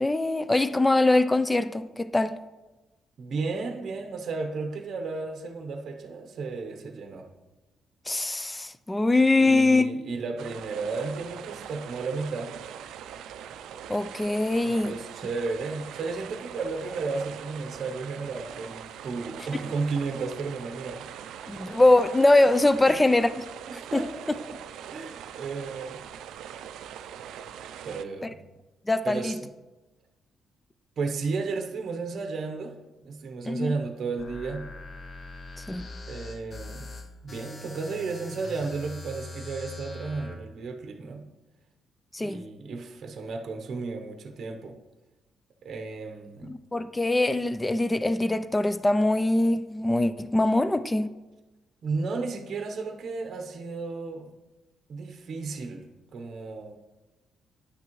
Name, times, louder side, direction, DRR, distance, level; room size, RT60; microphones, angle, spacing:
voice 1, 0.0-2.4 8.1-9.9 13.9-14.9 21.5-23.5 23.9-24.0 28.9-29.3 33.5-33.8 35.7-35.9 42.1-42.4 46.4-51.1, left 2 dB, 10° left, 12 dB, 0.3 m, -23 dB
voice 2, 3.2-7.3 9.4-12.5 14.6-21.1 22.8-23.0 23.7-24.6 24.9-26.0 27.8-28.4 29.0-29.5 31.0-32.8 33.0-34.7 36.1-36.9 37.2-41.3 42.2-44.8 45.6-46.6 51.8-54.3 54.9-55.8 56.1-56.8, right 4 dB, 50° right, 4 dB, 0.8 m, -33 dB
sound 1, 10.4-28.0, right 9 dB, 90° right, 0.3 m, -42 dB
sound 2, 34.2-40.4, left 2 dB, 30° left, 0.7 m, -42 dB
9.6 x 6.1 x 3.0 m, 1.1 s
cardioid pair, 140°, 0 cm